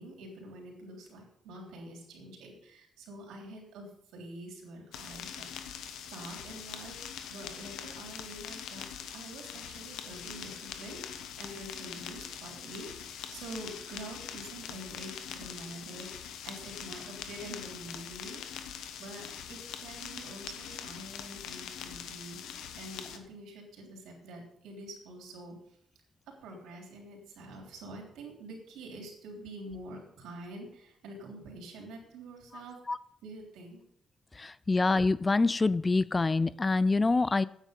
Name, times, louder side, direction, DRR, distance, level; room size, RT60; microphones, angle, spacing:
voice 1, 0.0-5.7 6.1-7.0 7.3-25.8 26.4-32.8 33.2-33.8, right 1 dB, 90° right, 0 dB, 3.5 m, -46 dB
sound 1, 4.9-23.2, left 8 dB, 90° left, 1.0 m, -43 dB
voice 2, 34.4-37.4, left 3 dB, 25° left, 19 dB, 0.4 m, -26 dB
9.2 x 8.9 x 5.3 m, 0.67 s
cardioid pair, 85°, 0 cm